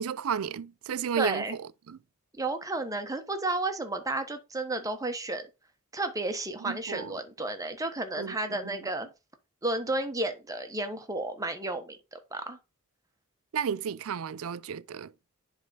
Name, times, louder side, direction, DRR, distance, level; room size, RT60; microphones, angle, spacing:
voice 1, 0.0-2.0 6.6-7.1 8.2-8.9 13.5-15.1, right 7 dB, 70° right, 0.4 m, -33 dB
voice 2, 1.2-1.5 2.4-5.5 5.9-9.1 9.6-12.6, right 2 dB, 15° right, 1.1 m, -32 dB
10.5 x 3.6 x 4.0 m
head